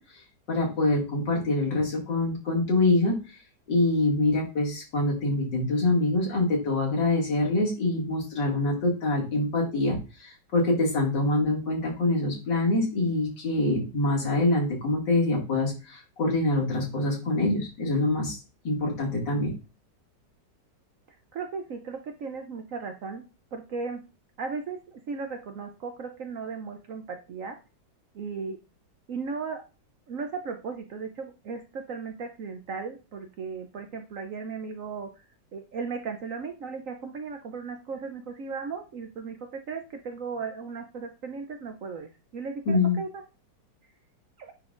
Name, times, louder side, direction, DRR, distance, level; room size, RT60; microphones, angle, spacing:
voice 1, 0.5-3.1 3.7-18.4 18.6-19.5 42.7-43.0, left 2 dB, 75° left, -3 dB, 2.9 m, -25 dB
voice 2, 21.3-23.2 23.5-24.0 24.4-27.6 28.1-28.6 29.1-29.6 30.1-35.1 35.5-43.2 44.4-44.5, right 5 dB, 60° right, 5 dB, 0.9 m, -36 dB
9.7 x 3.9 x 2.5 m, 0.30 s
omnidirectional pair, 2.0 m